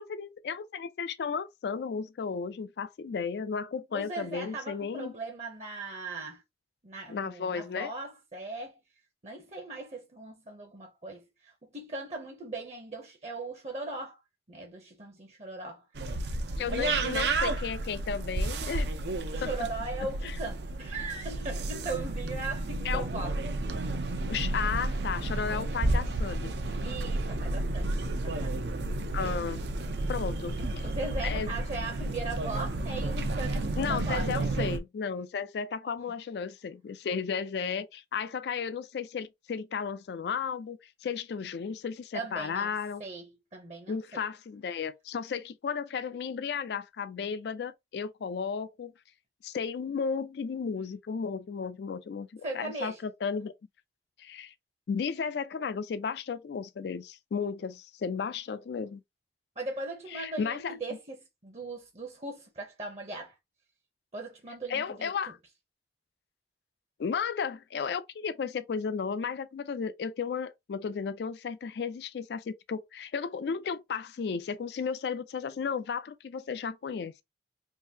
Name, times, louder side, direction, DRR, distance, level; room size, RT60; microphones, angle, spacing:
voice 1, 0.0-5.1 7.1-7.9 16.6-18.9 19.4-19.5 20.2-20.4 22.8-23.1 24.3-26.5 29.1-29.6 30.1-30.9 31.2-31.5 33.8-43.0 43.9-48.9 49.4-53.5 54.2-54.5 54.9-59.0 60.1-60.7 64.7-65.4 67.0-77.2, left 6 dB, 70° left, 0.3 m, -34 dB
voice 2, 3.9-6.4 6.8-8.8 9.2-14.2 14.5-15.8 16.8-17.2 19.3-23.4 23.7-23.9 26.8-28.6 30.8-34.5 42.1-42.7 43.0-44.2 52.4-53.0 59.6-61.2 61.4-63.3 64.1-65.1, right 2 dB, 35° right, 0.7 m, -39 dB
sound 1, 15.9-34.8, right 2 dB, 80° right, 0.6 m, -31 dB
3.7 x 2.6 x 2.7 m
head